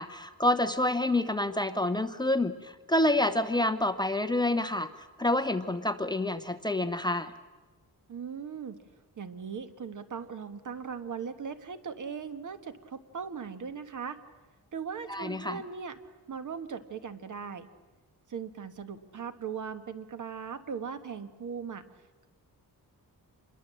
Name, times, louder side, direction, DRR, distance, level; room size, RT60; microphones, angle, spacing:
voice 1, 0.0-4.9 5.2-7.3 15.1-15.6, left 1 dB, 10° left, 9 dB, 0.8 m, -28 dB
voice 2, 8.1-8.8 9.2-14.2 14.7-16.0 16.3-17.7 18.3-21.8, right 6 dB, 55° right, 10 dB, 1.4 m, -39 dB
26.5 x 22.0 x 7.6 m, 1.2 s
wide cardioid pair, 160°, 37 cm